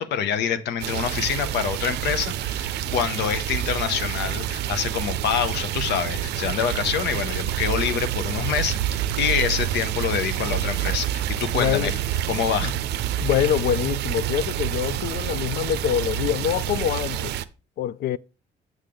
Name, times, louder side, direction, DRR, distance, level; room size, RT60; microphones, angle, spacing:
voice 1, 0.0-11.9 12.3-12.8, left 8 dB, 75° left, 0.9 m, -26 dB
sound 1, 0.8-17.4, right 12 dB, 75° right, 0.5 m, -28 dB
voice 2, 11.5-11.9 12.6-12.7 13.2-17.3 17.8-18.2, left 11 dB, 60° left, 0.4 m, -25 dB
6.8 x 6.4 x 3.7 m
supercardioid pair, 70°, 18 cm